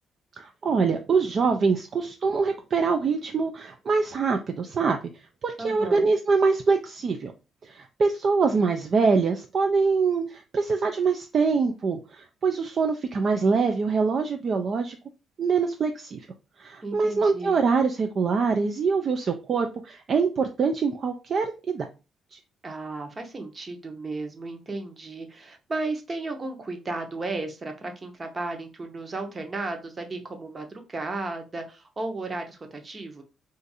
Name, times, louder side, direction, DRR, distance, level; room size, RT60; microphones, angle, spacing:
voice 1, 0.4-5.0 5.4-7.3 7.6-15.0 15.4-16.2 16.6-21.8 22.3-22.4, right 4 dB, 50° right, 4 dB, 0.3 m, -24 dB
voice 2, 5.6-6.1 16.8-17.6 22.6-33.2, right 2 dB, 30° right, 5 dB, 0.8 m, -34 dB
2.5 x 2.5 x 4.0 m, 0.31 s
cardioid pair, 90°, 0 cm